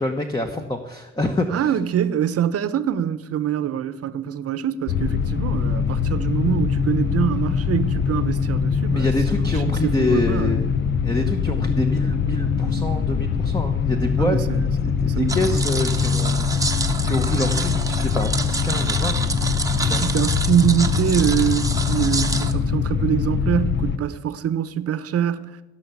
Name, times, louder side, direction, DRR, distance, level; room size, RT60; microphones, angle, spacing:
voice 1, 0.0-1.7 8.9-10.7 11.0-14.4 14.8-16.5 17.1-19.2 19.9-20.0, left 2 dB, 15° left, 1.1 m, -26 dB
voice 2, 1.5-10.6 14.2-14.6 15.1-15.7 19.8-25.6, right 9 dB, 50° right, 1.0 m, -24 dB
sound 1, 4.9-24.0, left 6 dB, 40° left, 0.8 m, -23 dB
sound 2, 15.3-22.5, right 3 dB, 10° right, 1.0 m, -28 dB
16.0 x 5.8 x 8.2 m
cardioid pair, 90°, 30 cm